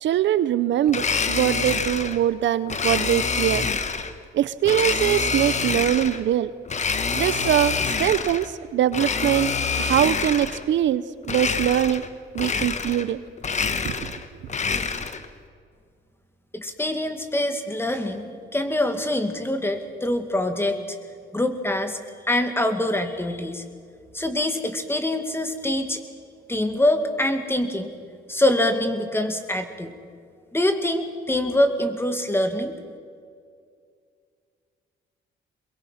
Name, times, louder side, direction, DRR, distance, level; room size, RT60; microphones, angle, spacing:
voice 1, 0.0-3.7 4.3-6.5 7.1-9.5 9.8-12.0 12.3-13.2 13.8-14.1, right 11 dB, 70° right, 15 dB, 0.7 m, -22 dB
Domestic sounds home sounds, 0.9-2.2 2.7-4.1 4.6-6.2 6.7-8.5 8.9-10.6 11.2-12.1 12.3-13.1 13.4-15.3, left 5 dB, 35° left, 1.3 m, -26 dB
voice 2, 16.5-21.0 21.3-22.0 22.3-23.6 24.1-26.0 26.5-27.9 28.3-29.9 30.5-32.7, left 1 dB, 10° left, 7 dB, 2.2 m, -24 dB
23.0 x 22.0 x 5.8 m, 2.2 s
cardioid pair, 90°, 20 cm